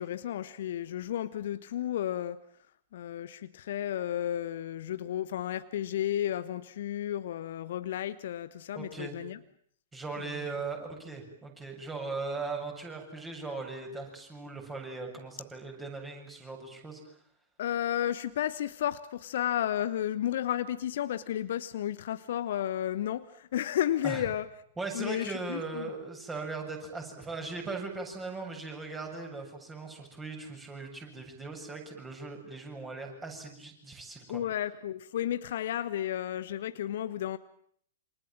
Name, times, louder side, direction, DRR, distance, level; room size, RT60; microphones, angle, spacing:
voice 1, 0.0-2.4 2.9-9.4 10.2-10.5 17.6-24.5 24.9-25.9 34.3-37.4, left 11 dB, 55° left, 1.1 m, -33 dB
voice 2, 8.7-9.2 9.9-17.0 24.0-24.2 24.8-34.4, right 3 dB, 10° right, 7.6 m, -39 dB
28.0 x 26.5 x 7.6 m
figure-of-eight pair, 110°, 0 cm